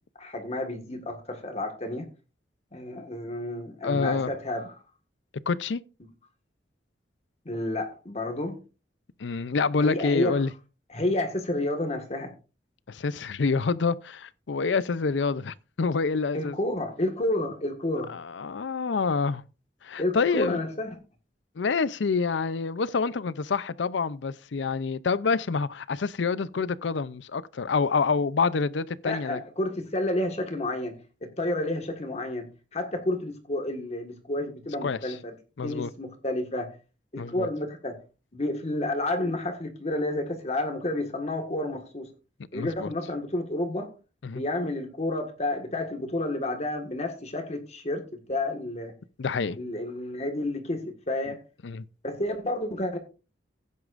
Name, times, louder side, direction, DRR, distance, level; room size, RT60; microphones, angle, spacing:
voice 1, 0.2-2.1 2.7-4.8 7.5-8.6 9.8-10.4 10.9-12.3 16.3-18.1 20.0-20.9 29.0-36.7 37.1-38.0 38.3-42.1 42.5-43.9 44.3-48.9 49.5-51.4 52.0-53.0, left 1 dB, 40° left, 1.6 m, -30 dB
voice 2, 3.8-4.3 5.5-5.8 9.2-10.5 12.9-16.5 18.1-19.4 19.8-20.6 21.6-29.4 34.8-35.0 35.6-35.9 37.2-37.5 42.5-42.9 44.2-44.4 49.2-49.6 51.6-51.9, left 4 dB, 90° left, 0.5 m, -27 dB
16.0 x 9.5 x 2.5 m
head